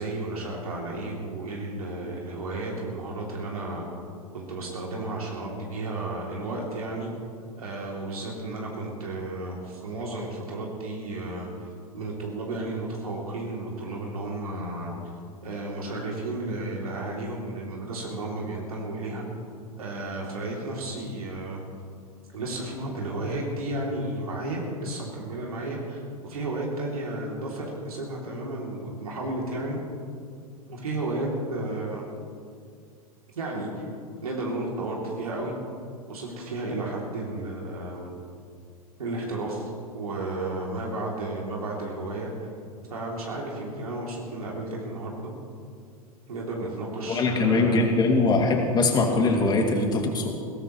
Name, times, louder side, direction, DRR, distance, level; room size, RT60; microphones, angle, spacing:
voice 1, 0.0-3.9 4.3-7.1 7.6-11.7 11.9-15.0 15.4-19.2 19.8-21.6 22.3-29.8 30.7-32.1 33.3-33.9 34.2-35.6 36.1-38.1 39.0-42.5 42.9-45.3 46.3-47.9 49.2-49.4, right 2 dB, 70° right, -2 dB, 2.9 m, -33 dB
voice 2, 47.1-50.3, left 3 dB, 20° left, 1 dB, 2.5 m, -22 dB
21.5 x 17.5 x 3.1 m, 2.3 s
figure-of-eight pair, 95°, 19 cm